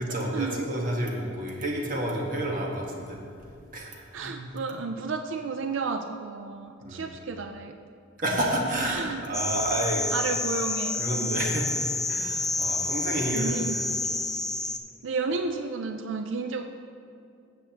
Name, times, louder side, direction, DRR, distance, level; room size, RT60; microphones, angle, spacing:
voice 1, 0.0-3.2 3.7-4.5 6.8-7.1 8.2-10.0 11.0-11.7 12.1-13.8, right 1 dB, 45° right, -1 dB, 1.4 m, -30 dB
voice 2, 4.1-7.8 8.9-9.2 10.1-11.4 13.3-14.2 15.0-16.6, right 4 dB, 65° right, 6 dB, 0.4 m, -32 dB
sound 1, 9.3-14.8, left 2 dB, ahead, 0.3 m, -29 dB
12.5 x 7.6 x 2.9 m, 2.4 s
head